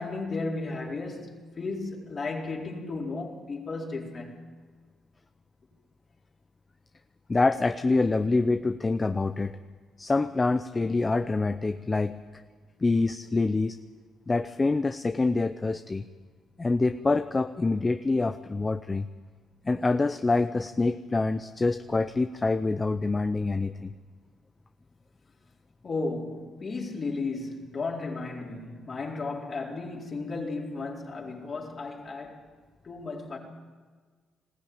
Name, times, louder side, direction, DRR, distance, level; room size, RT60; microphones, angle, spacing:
voice 1, 0.0-4.4 25.8-32.5 32.8-33.4, left 3 dB, 40° left, 4.3 m, -34 dB
voice 2, 7.3-9.5 10.0-12.2 12.8-13.8 14.3-16.0 16.6-19.1 19.6-23.9, left 3 dB, 25° left, 0.7 m, -26 dB
20.5 x 16.0 x 8.9 m
cardioid pair, 90°, 0 cm